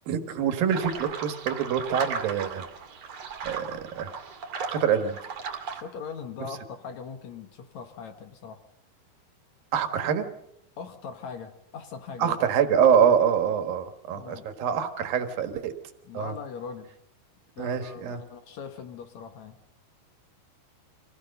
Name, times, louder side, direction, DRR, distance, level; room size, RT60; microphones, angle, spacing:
voice 1, 0.1-2.7 3.4-4.1 4.7-5.2 9.7-10.3 12.2-15.7 16.1-16.3 17.6-18.2, right 8 dB, 65° right, 8 dB, 3.1 m, -25 dB
sound 1, 0.7-5.8, right 6 dB, 45° right, 2.6 m, -36 dB
voice 2, 5.7-8.6 10.8-12.4 14.1-14.5 16.1-17.0 17.6-19.6, left 6 dB, 65° left, 8 dB, 1.9 m, -40 dB
25.5 x 17.0 x 6.6 m, 0.79 s
omnidirectional pair, 4.8 m